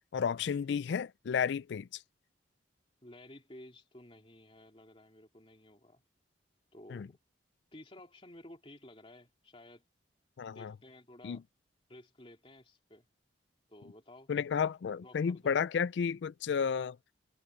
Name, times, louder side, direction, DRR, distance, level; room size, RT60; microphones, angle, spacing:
voice 1, 0.1-1.9 6.9-7.1 10.4-10.7 11.2-11.4 14.3-17.0, left 6 dB, 65° left, 0.3 m, -32 dB
voice 2, 3.0-6.0 6.7-7.2 7.7-9.8 10.5-11.4 11.9-13.1 13.7-14.3 14.9-15.6, left 1 dB, 30° left, 3.0 m, -54 dB
head